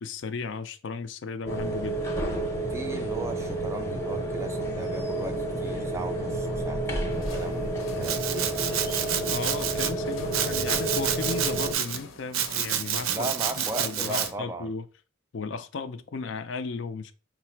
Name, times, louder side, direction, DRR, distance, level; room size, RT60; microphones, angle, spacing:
voice 1, 0.0-2.0 9.3-13.3 13.6-14.8 15.3-17.1, left 4 dB, 60° left, 0.4 m, -35 dB
sound 1, 1.5-11.7, right 1 dB, 15° left, 0.7 m, -30 dB
voice 2, 2.7-8.8 13.1-14.7, right 2 dB, 15° right, 0.3 m, -37 dB
sound 2, 7.1-14.3, left 3 dB, 75° left, 0.9 m, -47 dB
Domestic sounds home sounds, 8.0-9.9 10.3-12.0 12.3-14.3, right 9 dB, 85° right, 0.5 m, -29 dB
4.7 x 2.0 x 4.4 m
head